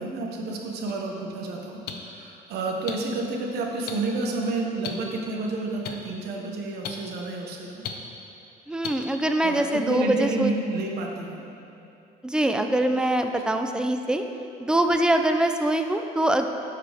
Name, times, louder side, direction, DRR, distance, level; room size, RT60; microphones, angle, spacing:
voice 1, 0.0-7.8 9.4-11.4, right 2 dB, 75° right, 0 dB, 1.1 m, -30 dB
sound 1, 0.9-1.0 1.9-2.0 2.9-3.0 3.9-4.0 4.8-4.9 5.8-5.9 6.8-6.9 7.8-7.9 8.8-8.9, left 10 dB, 70° left, 0.7 m, -32 dB
voice 2, 8.7-10.5 12.2-14.2 14.6-16.5, right 1 dB, 5° right, 6 dB, 0.4 m, -23 dB
11.0 x 4.8 x 3.4 m, 2.8 s
cardioid pair, 110°, 17 cm